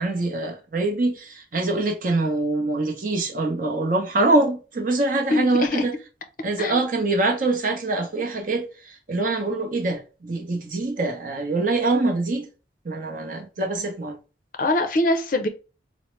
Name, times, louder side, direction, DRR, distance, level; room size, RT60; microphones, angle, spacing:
voice 1, 0.0-5.9 6.4-12.5 12.8-14.2, right 2 dB, 45° right, 0.7 m, -24 dB
voice 2, 5.3-5.8 6.6-6.8 14.6-15.5, left 2 dB, 45° left, 0.5 m, -23 dB
4.1 x 2.0 x 3.1 m
head